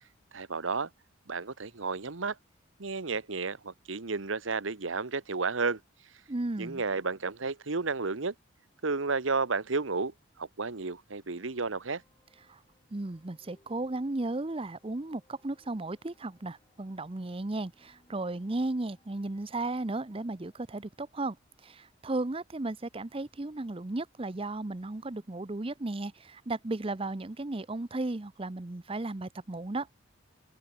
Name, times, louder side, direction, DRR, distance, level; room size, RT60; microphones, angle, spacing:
voice 1, 0.3-0.9 1.3-2.4 2.8-5.8 6.6-8.3 8.8-12.0, right 4 dB, 80° right, 1.2 m, -32 dB
voice 2, 6.3-6.8 12.5-12.6 12.9-21.4 21.6-29.9, right 2 dB, 30° right, 0.7 m, -35 dB
sound 1, 11.1-22.4, left 1 dB, 20° left, 7.7 m, -69 dB
open air
head